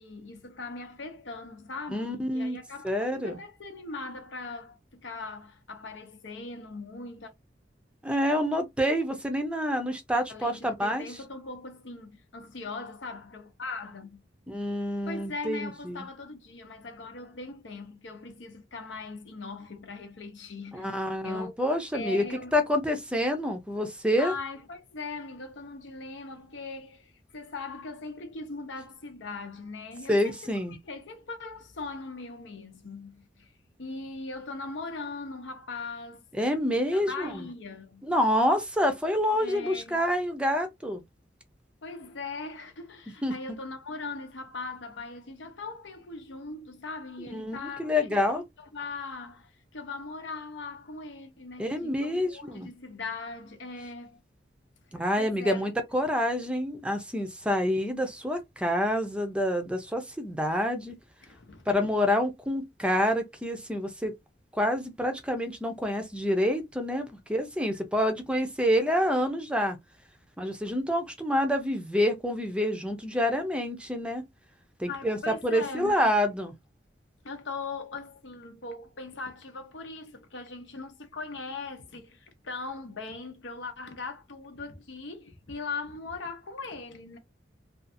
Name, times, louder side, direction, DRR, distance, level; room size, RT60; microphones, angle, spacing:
voice 1, 0.0-7.3 10.3-14.2 15.1-21.6 21.9-22.6 24.2-30.6 30.8-33.5 33.8-36.3 36.9-38.0 39.4-40.0 41.8-54.2 55.2-55.7 61.2-61.7 74.9-76.1 77.2-87.2, left 3 dB, 85° left, 0.7 m, -40 dB
voice 2, 1.9-2.6 2.8-3.4 8.0-11.1 14.5-16.1 20.7-24.3 30.1-30.8 36.4-37.5 38.0-41.0 43.2-43.6 47.3-48.4 51.6-52.7 54.9-60.9 61.7-64.1 64.5-69.8 70.4-74.2 74.8-76.5, equal, 5° right, 0.5 m, -27 dB
2.6 x 2.4 x 2.5 m
head